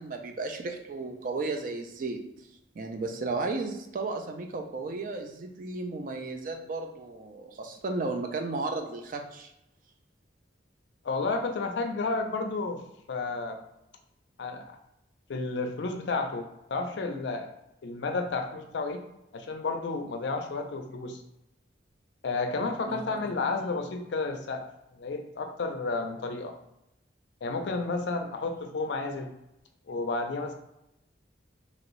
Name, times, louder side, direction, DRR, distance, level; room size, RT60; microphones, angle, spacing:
voice 1, 0.0-2.2 2.8-9.5 22.9-23.0, right 3 dB, 45° right, 4 dB, 0.3 m, -34 dB
voice 2, 11.0-13.6 14.4-14.8 15.3-17.5 17.8-19.0 19.3-21.2 22.2-24.6 24.9-26.5 27.4-29.3 29.9-30.6, left 3 dB, 65° left, 5 dB, 0.4 m, -31 dB
2.9 x 2.6 x 3.0 m, 0.87 s
head